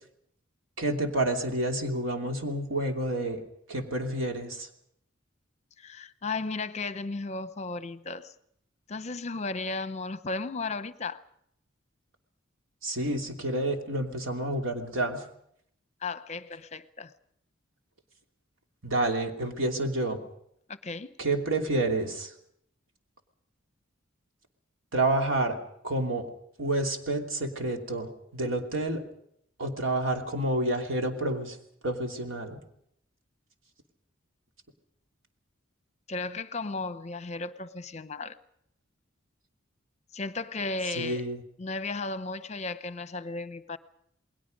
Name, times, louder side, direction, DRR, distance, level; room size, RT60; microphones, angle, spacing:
voice 1, 0.8-3.4 3.7-4.7 12.8-15.2 18.8-20.2 21.2-22.3 24.9-25.6 25.8-26.3 26.6-29.0 29.6-31.6 31.8-32.6 41.0-41.4, right 2 dB, 80° right, 3.0 m, -29 dB
voice 2, 5.8-8.3 8.9-11.2 16.0-17.1 20.7-21.2 36.1-38.4 40.1-41.2 41.6-43.8, left 3 dB, 35° left, 0.8 m, -35 dB
29.0 x 20.5 x 5.3 m
head